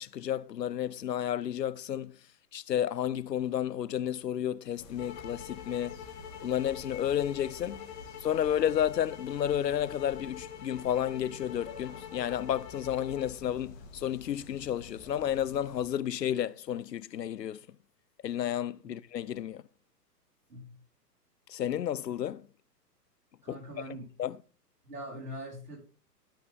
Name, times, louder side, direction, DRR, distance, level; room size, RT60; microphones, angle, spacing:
voice 1, 0.0-2.2 2.5-6.0 6.4-7.9 8.2-17.6 18.2-19.6 21.5-22.4 23.5-23.6 24.2-24.4, left 10 dB, 80° left, 0.6 m, -31 dB
sound 1, 4.8-15.8, left 4 dB, 50° left, 2.0 m, -49 dB
sound 2, 5.0-13.3, left 9 dB, 25° left, 1.5 m, -46 dB
voice 2, 23.4-24.1 24.8-25.8, equal, 65° right, 5.2 m, -42 dB
13.0 x 5.6 x 3.7 m
figure-of-eight pair, 115°, 49 cm